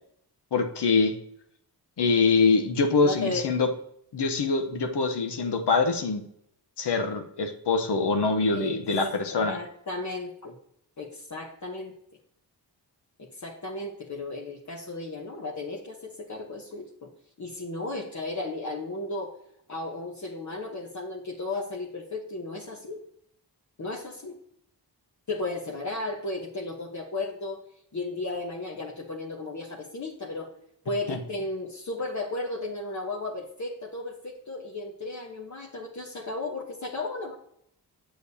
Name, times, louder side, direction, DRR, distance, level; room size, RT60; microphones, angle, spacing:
voice 1, 0.5-1.1 2.0-3.7 4.1-6.2 6.8-9.6 31.1-31.2, left 4 dB, 70° left, 5 dB, 1.0 m, -24 dB
voice 2, 3.0-3.5 8.5-10.5 11.0-12.0 13.2-17.1 17.4-19.3 19.7-23.0 23.8-24.4 25.3-27.6 27.9-30.5 30.8-37.4, left 2 dB, 40° left, -2 dB, 1.1 m, -35 dB
7.6 x 6.7 x 2.8 m, 0.71 s
cardioid pair, 65°, 43 cm